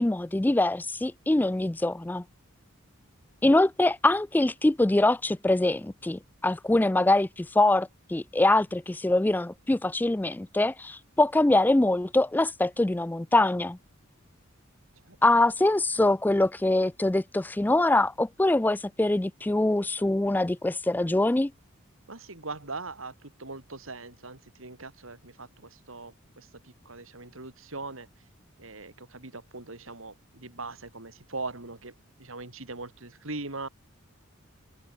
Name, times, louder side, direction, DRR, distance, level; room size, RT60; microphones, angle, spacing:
voice 1, 0.0-2.2 3.4-13.8 15.2-21.5, left 2 dB, 10° left, 0.3 m, -24 dB
voice 2, 15.0-15.4 15.9-16.1 22.1-28.1 28.6-33.7, right 3 dB, 75° right, 3.3 m, -41 dB
open air
head